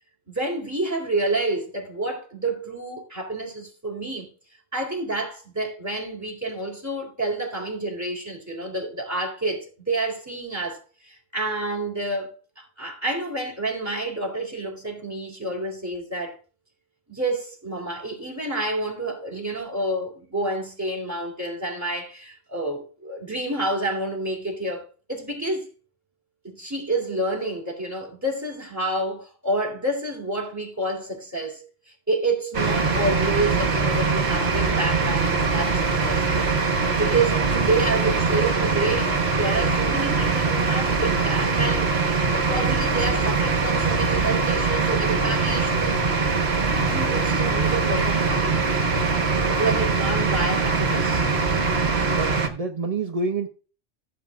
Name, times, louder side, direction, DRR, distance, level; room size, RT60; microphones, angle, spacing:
voice 1, 0.3-4.3 4.7-12.3 12.6-16.3 17.1-25.7 26.4-31.7 32.1-36.3 36.9-46.0 46.8-48.6 49.4-51.2, right 2 dB, 15° right, 2.9 m, -28 dB
sound 1, 32.5-52.5, right 4 dB, 55° right, 1.5 m, -22 dB
voice 2, 52.1-53.5, right 4 dB, 40° right, 0.5 m, -28 dB
15.0 x 7.7 x 2.4 m
omnidirectional pair, 1.3 m